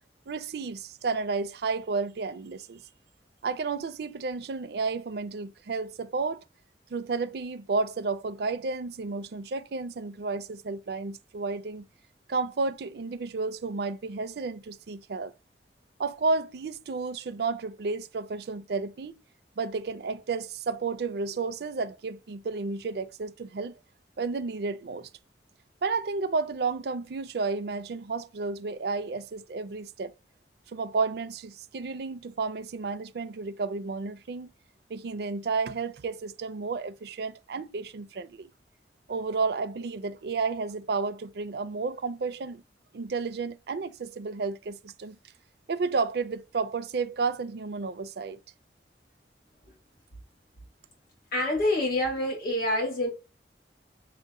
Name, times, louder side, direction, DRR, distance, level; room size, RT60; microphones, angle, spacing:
voice 1, 0.3-2.8 3.4-6.4 6.9-11.9 12.3-15.3 16.0-19.2 19.6-23.7 24.2-25.1 25.8-30.1 30.7-34.5 34.9-38.5 39.1-42.6 42.9-45.2 45.7-48.4, right 4 dB, 65° right, 0.5 m, -32 dB
voice 2, 51.3-53.1, left 1 dB, 55° left, 2.0 m, -26 dB
6.4 x 2.2 x 3.6 m
head